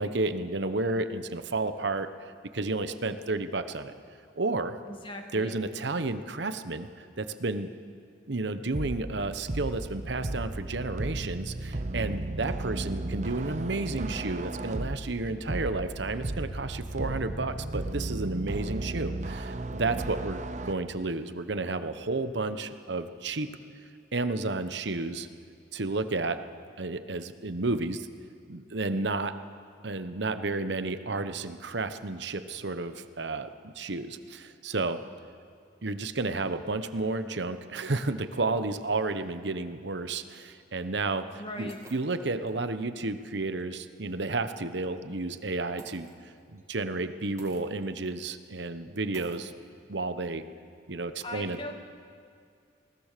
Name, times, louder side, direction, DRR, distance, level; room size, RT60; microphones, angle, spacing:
voice 1, 0.0-3.9 4.4-4.8 5.3-7.7 8.3-23.5 24.1-25.3 25.7-26.4 26.8-28.1 28.5-29.3 29.8-35.0 35.8-46.1 46.5-49.5 49.9-50.4 50.9-51.7, right 3 dB, 70° right, 10 dB, 1.0 m, -32 dB
voice 2, 4.9-5.6 41.4-41.8 51.2-51.7, left 1 dB, 25° left, 4 dB, 1.7 m, -39 dB
sound 1, 8.7-20.7, right 2 dB, 40° right, 0.7 m, -35 dB
sound 2, 40.6-40.7 41.3-42.7 43.1-43.2 43.6-43.7 45.8-46.6 47.4-48.2 48.4-48.5 49.1-49.6, right 2 dB, 15° right, 1.7 m, -52 dB
21.0 x 19.0 x 6.8 m, 2.3 s
head